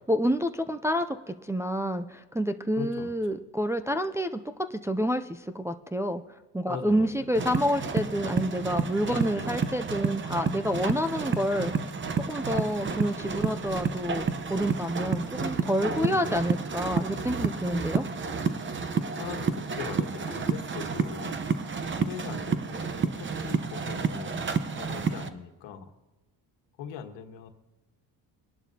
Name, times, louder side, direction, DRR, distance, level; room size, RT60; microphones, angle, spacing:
voice 1, 0.1-4.4 4.7-6.2 6.5-11.7 12.3-18.0, equal, 5° right, 6 dB, 0.3 m, -28 dB
voice 2, 2.8-3.2 6.7-7.2 9.0-9.5 15.9-16.5 19.1-21.4 22.1-25.9 26.8-27.5, left 7 dB, 85° left, 6 dB, 1.5 m, -40 dB
sound 1, 7.3-25.3, right 5 dB, 25° right, 0.8 m, -30 dB
23.0 x 11.0 x 2.8 m, 1.1 s
cardioid pair, 110°, 43 cm